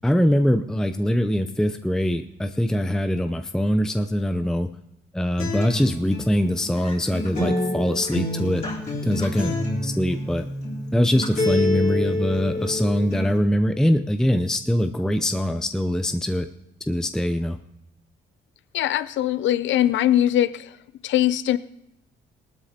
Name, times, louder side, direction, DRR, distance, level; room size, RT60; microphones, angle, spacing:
voice 1, 0.0-4.7 5.1-8.6 9.0-9.6 9.8-10.5 10.9-16.5 16.9-17.6, equal, 5° left, 8 dB, 0.6 m, -23 dB
Acoustic guitar, 5.4-13.4, left 1 dB, 40° left, 3.9 m, -28 dB
voice 2, 18.7-20.7 21.0-21.6, left 12 dB, 70° left, 15 dB, 0.6 m, -21 dB
18.5 x 12.5 x 2.9 m, 0.80 s
cardioid pair, 90°, 20 cm